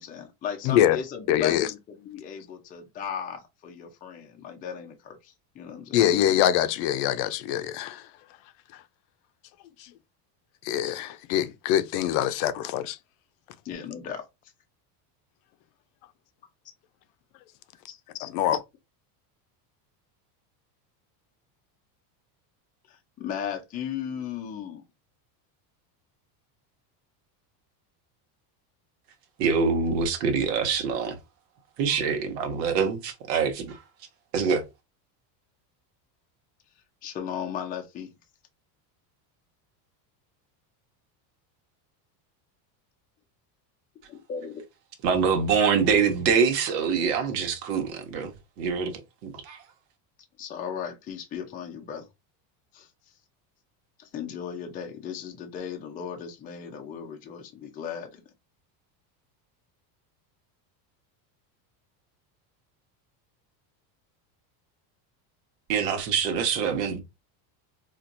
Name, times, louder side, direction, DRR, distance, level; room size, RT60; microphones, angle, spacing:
voice 1, 0.0-6.0 13.6-14.3 17.9-18.0 22.9-24.8 37.0-38.1 44.1-44.6 50.4-52.1 52.7-52.9 54.0-58.2, left 8 dB, 20° left, 0.4 m, -36 dB
voice 2, 0.6-1.0 1.3-1.7 5.9-8.0 9.8-9.9 10.6-13.0 18.2-18.6, left 11 dB, 60° left, 0.6 m, -24 dB
voice 3, 29.4-31.2 31.8-33.8 34.3-34.6 45.0-49.6 65.7-67.0, right 6 dB, 85° right, 1.2 m, -25 dB
4.3 x 2.5 x 2.5 m
cardioid pair, 150°, 48 cm